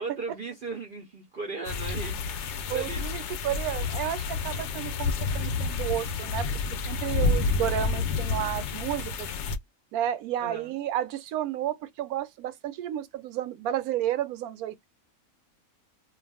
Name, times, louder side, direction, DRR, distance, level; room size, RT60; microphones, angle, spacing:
voice 1, 0.0-2.2 2.7-3.1 10.4-10.8, right 3 dB, 55° right, 0.6 m, -36 dB
sound 1, 1.7-9.6, left 4 dB, 65° left, 0.7 m, -29 dB
voice 2, 2.7-6.5 6.9-9.3 9.9-14.9, right 11 dB, 85° right, 1.1 m, -32 dB
2.5 x 2.3 x 3.3 m
omnidirectional pair, 1.5 m